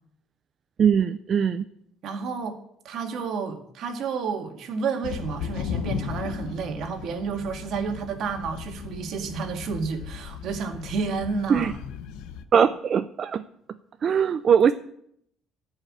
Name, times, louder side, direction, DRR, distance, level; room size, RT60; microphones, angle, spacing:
voice 1, 0.8-1.6 11.5-11.7 12.5-13.4 14.0-14.7, right 7 dB, 35° right, 10 dB, 0.4 m, -21 dB
voice 2, 2.0-2.6 2.8-11.7, right 5 dB, 50° right, 5 dB, 1.9 m, -30 dB
sound 1, 5.0-12.4, left 8 dB, 90° left, 0.9 m, -36 dB
15.0 x 5.7 x 8.6 m, 0.71 s
cardioid pair, 165°, 0 cm